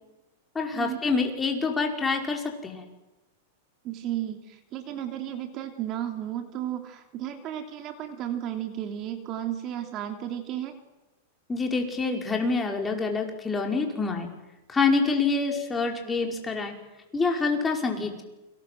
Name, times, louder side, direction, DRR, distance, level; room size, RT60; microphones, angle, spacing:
voice 1, 0.6-2.8 11.5-14.3 14.7-16.7 17.1-18.2, left 4 dB, 10° left, 2 dB, 5.3 m, -26 dB
voice 2, 3.8-10.7, right 11 dB, 35° right, 6 dB, 3.0 m, -33 dB
29.0 x 25.5 x 7.9 m, 1.0 s
supercardioid pair, 145°, 0 cm